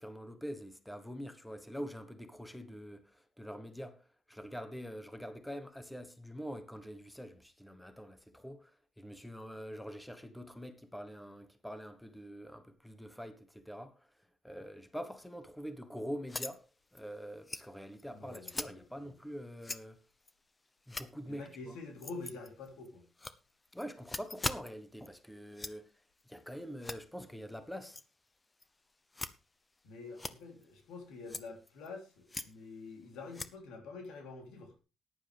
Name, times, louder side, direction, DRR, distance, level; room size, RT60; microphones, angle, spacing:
voice 1, 0.0-16.6 16.9-20.0 20.9-21.7 23.7-25.9 26.3-28.0, equal, 5° left, 1.3 m, -45 dB
sound 1, 16.3-16.6 16.9-17.0 17.4-17.6 18.0-18.1 18.3-18.7 19.6-19.8 20.2-20.3 20.8-21.1 22.0-22.9 23.2-24.7 25.0-25.1 25.5-25.7 26.2-26.4 26.8-27.0 27.9-28.0 28.6-28.7 29.1-29.3 30.1-30.8 31.3-31.9 32.3-32.5 33.3-33.5, left 2 dB, 20° left, 0.8 m, -40 dB
voice 2, 18.1-19.1 21.3-23.1 29.8-34.7, left 3 dB, 90° left, 3.4 m, -47 dB
14.0 x 10.5 x 3.5 m
cardioid pair, 90°, 0 cm